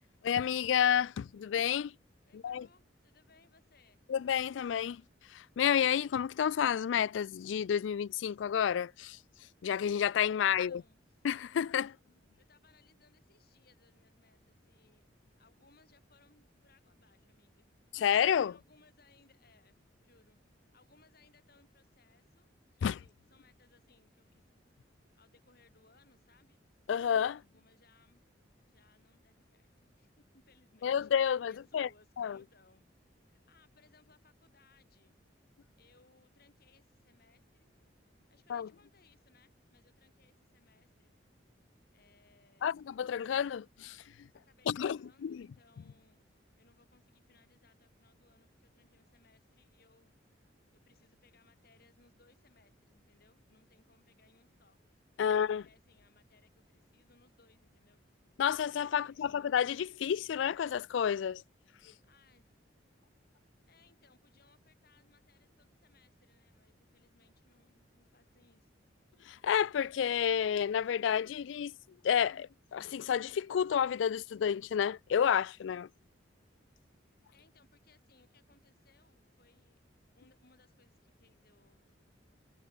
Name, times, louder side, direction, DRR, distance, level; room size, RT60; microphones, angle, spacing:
voice 1, 0.2-1.9 2.3-2.7 4.1-5.0 5.3-9.2 9.6-10.8 11.2-12.0 17.9-18.5 22.8-23.0 26.9-27.4 30.8-31.9 32.2-32.4 38.5-38.7 42.6-44.3 44.7-45.5 55.2-55.6 58.4-61.4 69.3-71.7 72.0-75.9, left 8 dB, 80° left, 0.3 m, -30 dB
voice 2, 2.2-4.0 10.4-11.2 12.4-15.0 15.4-17.7 18.1-24.4 25.1-26.6 27.5-28.3 28.7-31.1 31.4-32.8 33.2-35.2 35.8-37.7 38.3-41.1 41.9-42.9 44.4-46.2 46.6-50.1 50.7-54.8 55.2-58.0 58.9-59.5 62.0-62.5 63.6-68.7 77.3-79.8 80.1-81.9, left 4 dB, 55° left, 5.4 m, -67 dB
head